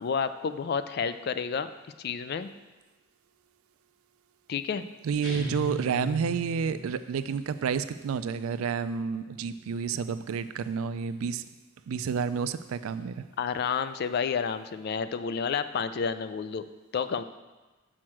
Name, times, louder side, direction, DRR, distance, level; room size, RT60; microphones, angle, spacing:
voice 1, 0.0-1.7 2.0-2.5 4.5-4.8 13.4-16.7 16.9-17.2, left 6 dB, 50° left, 12 dB, 0.3 m, -30 dB
voice 2, 5.0-11.4 11.9-13.3, right 6 dB, 85° right, 13 dB, 0.4 m, -30 dB
sound 1, 5.2-6.9, left 2 dB, 90° left, 2.7 m, -36 dB
6.2 x 4.4 x 6.1 m, 1.2 s
head